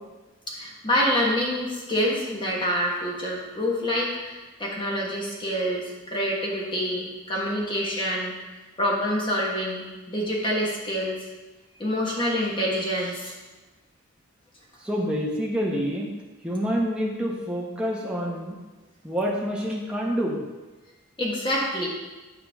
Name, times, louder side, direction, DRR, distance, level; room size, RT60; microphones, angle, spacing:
voice 1, 0.5-8.4 8.8-11.2 11.8-13.3 21.2-21.9, equal, 20° left, -4 dB, 1.4 m, -26 dB
voice 2, 14.8-16.1 16.4-18.6 19.0-20.4, equal, 5° right, -3 dB, 1.0 m, -27 dB
10.0 x 4.7 x 3.6 m, 1.2 s
head